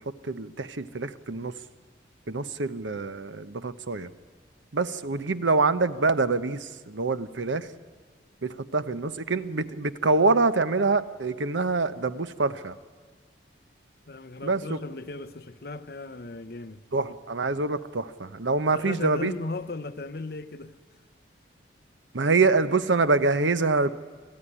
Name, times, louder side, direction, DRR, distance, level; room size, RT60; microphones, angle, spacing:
voice 1, 0.0-1.5 2.3-4.1 4.7-7.7 8.4-12.7 14.4-14.8 16.9-19.3 22.1-23.9, right 3 dB, 85° right, 0.9 m, -25 dB
voice 2, 14.1-16.8 18.6-20.8, left 3 dB, 55° left, 0.8 m, -37 dB
25.5 x 15.0 x 10.0 m
head